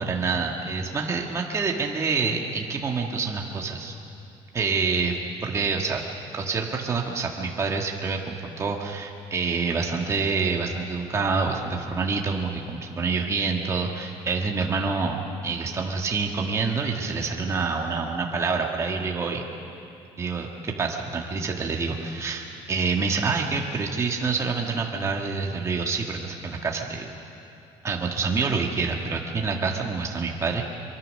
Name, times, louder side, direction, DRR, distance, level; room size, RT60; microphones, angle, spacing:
voice 1, 0.0-3.9 4.5-6.0 6.3-19.4 20.2-27.1 27.8-30.6, right 4 dB, 25° right, 1 dB, 1.6 m, -27 dB
24.0 x 23.5 x 6.5 m, 2.6 s
cardioid pair, 160°, 12 cm